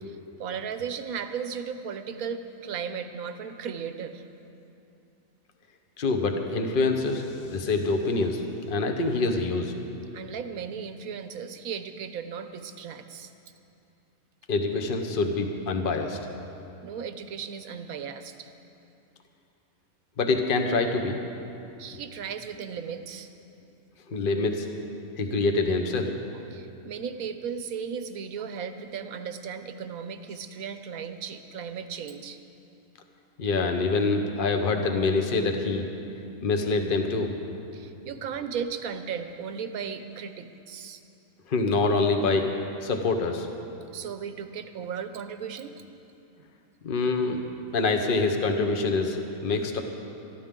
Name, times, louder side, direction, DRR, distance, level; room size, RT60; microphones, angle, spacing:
voice 1, 0.0-4.2 10.1-13.3 16.8-18.5 21.8-23.3 26.3-32.4 37.7-41.0 43.9-45.7, right 7 dB, 75° right, 9 dB, 1.2 m, -36 dB
voice 2, 6.0-9.7 14.5-16.2 20.2-21.2 24.1-24.7 25.2-26.1 33.4-35.8 36.4-37.3 41.5-42.5 42.8-43.5 46.8-47.4 47.7-49.8, left 3 dB, 40° left, 5 dB, 1.1 m, -25 dB
21.5 x 14.0 x 3.8 m, 2.7 s
omnidirectional pair, 1.5 m